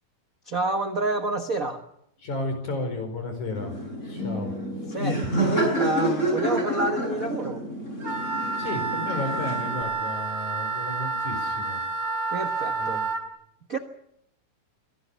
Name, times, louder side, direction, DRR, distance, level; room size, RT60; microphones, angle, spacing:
voice 1, 0.4-1.8 4.9-7.6 12.3-13.0 13.7-13.8, right 2 dB, 85° right, 7 dB, 0.7 m, -29 dB
voice 2, 2.2-3.8 4.0-4.5 4.8-4.9 8.6-11.8 12.2-12.3 12.8-13.1, left 2 dB, 60° left, 7 dB, 6.1 m, -33 dB
Laughter, 3.5-9.8, right 1 dB, 20° left, 6.1 m, -28 dB
sound 1, 4.2-8.5, left 2 dB, 85° left, 9.4 m, -41 dB
Wind instrument woodwind instrument, 8.0-13.2, right 3 dB, 35° right, 4.5 m, -29 dB
24.5 x 18.0 x 8.2 m, 0.75 s
omnidirectional pair, 3.8 m